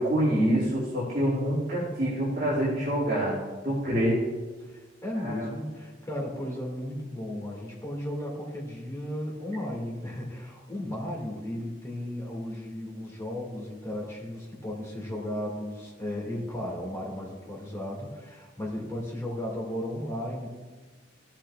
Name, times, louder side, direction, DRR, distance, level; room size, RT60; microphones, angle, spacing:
voice 1, 0.0-3.4 3.6-4.2 5.1-5.5, equal, 45° right, -9 dB, 2.5 m, -26 dB
voice 2, 4.6-20.5, left 1 dB, 15° left, -3 dB, 2.1 m, -35 dB
14.5 x 7.4 x 2.4 m, 1.3 s
head